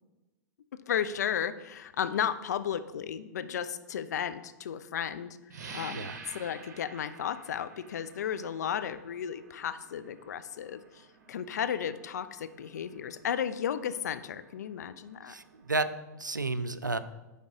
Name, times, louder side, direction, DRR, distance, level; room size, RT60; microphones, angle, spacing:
voice 1, 0.9-5.4 5.7-15.3, left 8 dB, 65° left, 12 dB, 0.4 m, -34 dB
sound 1, 5.5-15.8, right 5 dB, 60° right, 0.8 m, -51 dB
voice 2, 15.3-17.0, right 3 dB, 90° right, 13 dB, 0.4 m, -32 dB
9.7 x 3.6 x 3.8 m, 1.1 s
figure-of-eight pair, 100°, 10 cm